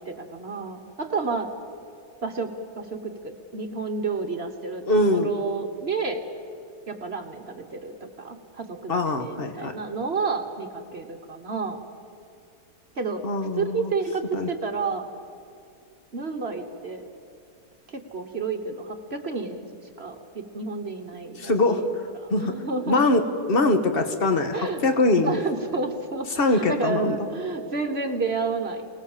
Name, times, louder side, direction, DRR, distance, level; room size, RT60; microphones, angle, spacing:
voice 1, 0.0-1.5 2.2-6.2 6.9-11.8 12.9-13.2 13.6-15.1 16.1-17.0 17.9-19.7 20.0-21.9 22.2-23.0 24.5-24.8 25.2-28.9, right 4 dB, 40° right, 5 dB, 1.3 m, -30 dB
voice 2, 4.9-5.3 8.9-9.7 13.2-13.9 14.3-14.5 21.4-21.8 22.3-22.5 22.9-25.4 26.3-27.2, left 2 dB, 35° left, 6 dB, 1.5 m, -22 dB
28.5 x 19.0 x 7.3 m, 2.5 s
omnidirectional pair, 1.7 m